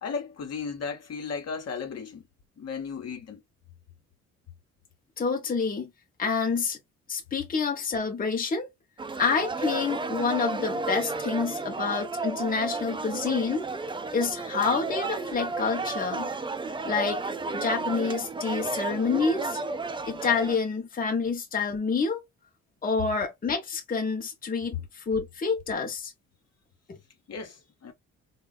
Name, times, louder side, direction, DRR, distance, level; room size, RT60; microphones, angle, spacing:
voice 1, 0.0-2.2 2.6-3.4 24.7-24.8 27.3-27.9, left 5 dB, 55° left, 1.0 m, -35 dB
voice 2, 5.2-5.9 6.2-6.8 7.1-8.7 9.2-13.7 14.1-16.3 16.8-19.6 20.1-22.2 22.8-26.1, left 5 dB, 30° left, 0.8 m, -28 dB
sound 1, 9.0-20.6, right 3 dB, 15° right, 0.5 m, -32 dB
3.9 x 2.3 x 2.2 m
cardioid pair, 90°, 30 cm